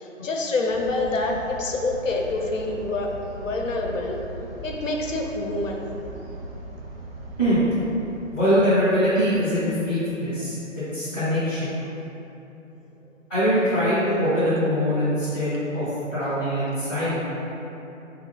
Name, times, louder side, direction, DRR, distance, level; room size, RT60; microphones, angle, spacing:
voice 1, 0.0-4.2 4.6-5.8, left 2 dB, 80° left, 0 dB, 0.6 m, -27 dB
sound 1, 0.7-10.5, right 1 dB, 50° right, 0.7 m, -40 dB
voice 2, 8.3-11.8 13.3-17.3, equal, 5° left, -20 dB, 0.4 m, -23 dB
3.8 x 2.3 x 3.7 m, 3.0 s
figure-of-eight pair, 135°, 38 cm